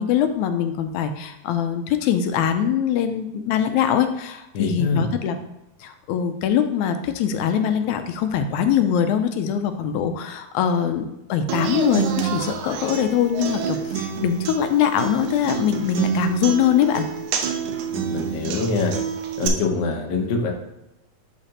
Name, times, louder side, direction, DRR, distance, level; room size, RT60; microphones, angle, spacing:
voice 1, 0.0-5.4 5.8-17.1, left 8 dB, 80° left, 8 dB, 1.9 m, -22 dB
voice 2, 4.5-5.1 17.9-18.9 19.4-20.5, left 4 dB, 65° left, 1 dB, 1.1 m, -24 dB
Human voice / Acoustic guitar, 11.5-19.5, right 8 dB, 85° right, 2.1 m, -28 dB
11.5 x 3.9 x 2.9 m, 0.90 s
omnidirectional pair, 3.4 m